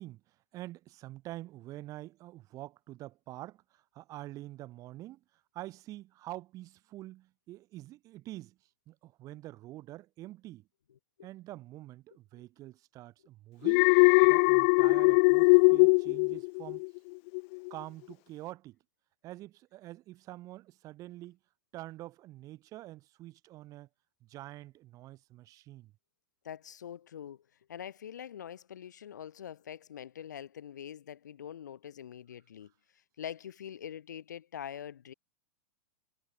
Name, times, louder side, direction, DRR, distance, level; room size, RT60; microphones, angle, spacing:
voice 1, 0.0-5.2 5.5-8.6 8.9-10.7 11.2-13.9 14.2-16.8 17.7-18.8 19.2-21.4 21.7-23.9 24.2-25.9, right 16 dB, 40° right, 4.7 m, -46 dB
Alarm, 13.6-17.0 17.3-17.7, left 34 dB, 50° left, 0.6 m, -21 dB
voice 2, 26.4-27.4 27.7-32.7 33.2-35.1, left 9 dB, 90° left, 4.7 m, -44 dB
hypercardioid pair, 125°, 9 cm